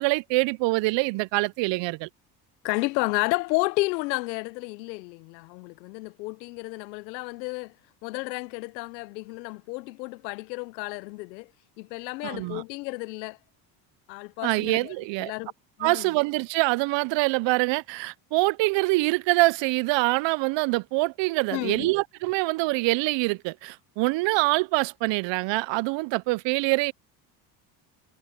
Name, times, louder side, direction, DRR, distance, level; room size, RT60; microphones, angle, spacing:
voice 1, 0.0-2.1 12.2-12.6 14.4-15.3 15.8-26.9, right 23 dB, 60° right, 0.7 m, -25 dB
voice 2, 2.6-7.7 8.0-11.5 11.8-13.4 14.1-14.9 15.2-15.5 15.8-16.1 21.5-21.9, left 24 dB, 85° left, 0.8 m, -31 dB
hypercardioid pair, 75°, 50 cm